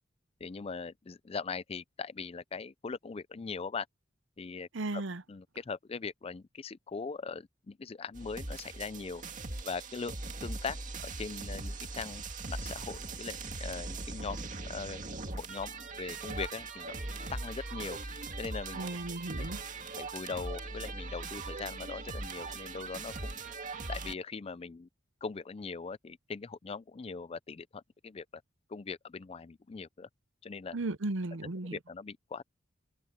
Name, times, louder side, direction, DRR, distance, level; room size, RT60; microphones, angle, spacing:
voice 1, 0.4-3.9 4.4-5.0 5.3-9.2 9.6-10.2 10.4-10.8 11.0-17.0 17.3-18.0 18.4-19.0 19.4-19.5 20.0-23.4 23.9-24.9 25.2-28.4 28.7-30.1 30.4-30.8 31.6-32.4, left 5 dB, 30° left, 0.4 m, -40 dB
voice 2, 4.7-5.2 18.7-19.6 30.7-31.8, right 2 dB, 70° right, 0.8 m, -35 dB
sound 1, 8.1-24.1, right 3 dB, 40° right, 2.1 m, -40 dB
head